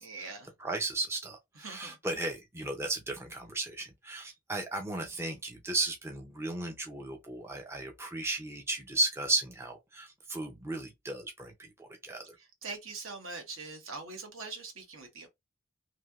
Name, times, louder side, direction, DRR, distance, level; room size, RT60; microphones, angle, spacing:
voice 1, 0.0-0.5 1.6-2.0 12.6-15.3, right 4 dB, 70° right, 1.1 m, -42 dB
voice 2, 0.6-11.5 11.8-12.2, right 2 dB, 10° right, 0.4 m, -35 dB
3.2 x 2.7 x 2.3 m
head